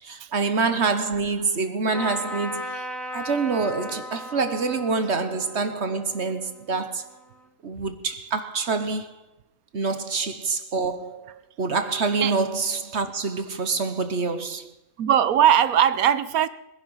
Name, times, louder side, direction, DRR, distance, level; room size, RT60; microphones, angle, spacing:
voice 1, 0.0-2.8 3.1-7.0 7.6-9.1 9.7-14.7, right 4 dB, 55° right, 1.4 m, -26 dB
Trumpet, 1.9-7.4, equal, ahead, 1.9 m, -37 dB
voice 2, 15.0-16.5, right 9 dB, 85° right, 1.3 m, -19 dB
23.5 x 11.0 x 5.6 m
omnidirectional pair, 1.5 m